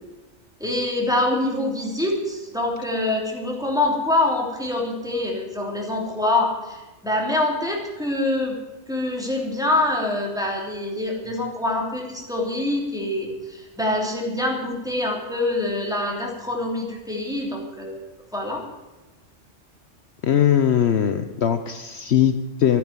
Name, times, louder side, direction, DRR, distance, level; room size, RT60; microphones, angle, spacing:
voice 1, 0.6-8.5 8.9-18.0 18.3-18.6, left 2 dB, 5° right, -2 dB, 3.0 m, -25 dB
voice 2, 20.2-22.8, left 9 dB, 65° left, 9 dB, 1.0 m, -20 dB
14.0 x 9.6 x 8.9 m, 1.1 s
omnidirectional pair, 1.3 m